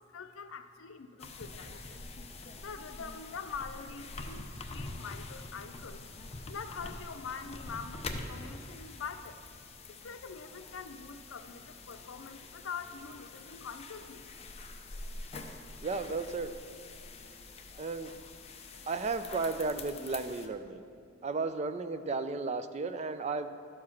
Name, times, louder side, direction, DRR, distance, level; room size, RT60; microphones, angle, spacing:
voice 1, 0.0-2.0 2.6-6.0 6.5-9.4 9.9-14.3, left 5 dB, 85° left, 9 dB, 0.6 m, -44 dB
sound 1, 1.2-20.5, left 3 dB, 30° left, 0.6 m, -45 dB
voice 2, 15.8-16.5 17.8-18.1 18.9-20.8 21.2-23.5, right 4 dB, 35° right, 10 dB, 0.4 m, -34 dB
12.5 x 4.8 x 5.8 m, 2.4 s
head